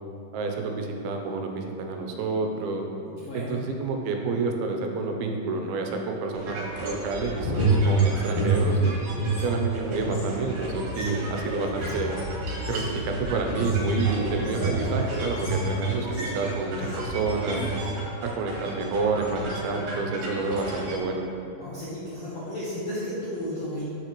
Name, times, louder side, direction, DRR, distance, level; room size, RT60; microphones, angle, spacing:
voice 1, 0.3-2.9 3.3-9.0 9.4-12.1 12.7-17.7 18.2-21.2, right 3 dB, 80° right, 3 dB, 2.5 m, -29 dB
voice 2, 3.2-3.6 21.6-23.8, left 1 dB, 75° left, -8 dB, 1.5 m, -33 dB
sound 1, 6.3-21.0, right 1 dB, 60° right, 2.5 m, -35 dB
sound 2, 7.2-9.4 9.7-16.4 16.8-17.2 17.4-17.8, right 2 dB, 55° left, 2.1 m, -28 dB
7.9 x 6.5 x 3.0 m, 2.6 s
omnidirectional pair, 4.4 m